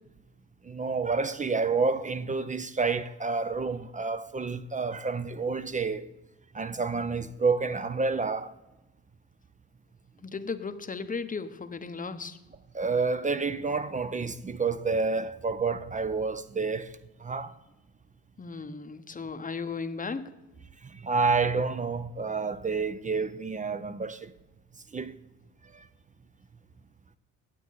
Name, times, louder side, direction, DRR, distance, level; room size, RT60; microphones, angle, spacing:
voice 1, 0.6-6.0 6.5-8.5 12.7-17.5 20.8-24.3 24.9-25.1 25.7-25.9, right 4 dB, 20° right, 0.5 m, -29 dB
voice 2, 10.2-12.4 18.4-20.3, left 4 dB, 25° left, 0.8 m, -36 dB
9.2 x 8.2 x 4.0 m
supercardioid pair, 60°, 35 cm